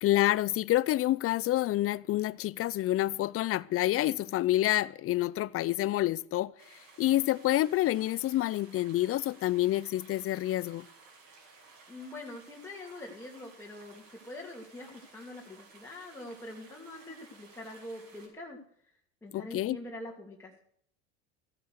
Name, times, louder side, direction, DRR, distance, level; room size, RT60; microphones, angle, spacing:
voice 1, 0.0-6.5 7.0-10.9 19.3-19.8, left 15 dB, 40° left, 0.6 m, -28 dB
sound 1, 6.6-18.3, right 4 dB, 60° right, 6.0 m, -56 dB
voice 2, 11.9-18.6 19.2-20.6, left 1 dB, 5° left, 2.8 m, -44 dB
15.0 x 9.2 x 6.5 m
supercardioid pair, 90°, 34 cm